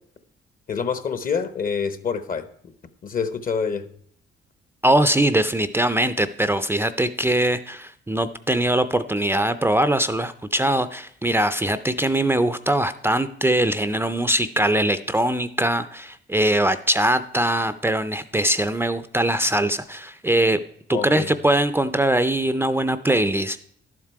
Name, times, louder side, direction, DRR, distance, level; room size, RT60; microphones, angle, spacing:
voice 1, 0.7-2.5 3.0-3.8 20.9-21.3, left 6 dB, 45° left, 12 dB, 1.0 m, -26 dB
voice 2, 4.8-20.6 20.9-23.6, right 1 dB, 10° right, 12 dB, 0.5 m, -22 dB
11.5 x 7.4 x 4.7 m, 0.64 s
cardioid pair, 90°, 20 cm